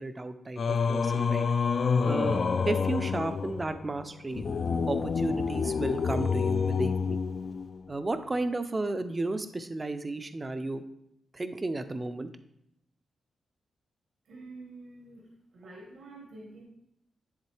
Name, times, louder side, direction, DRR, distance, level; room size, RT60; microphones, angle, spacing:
voice 1, 0.0-1.5 2.0-4.4 4.9-7.2 7.9-10.8 11.3-12.3, right 2 dB, 25° right, 9 dB, 0.4 m, -33 dB
Singing, 0.6-7.9, left 5 dB, 55° left, 0.3 m, -28 dB
voice 2, 14.3-15.3 15.5-16.6, right 2 dB, 80° right, -1 dB, 1.4 m, -47 dB
10.5 x 3.7 x 3.2 m, 0.77 s
cardioid pair, 110°, 0 cm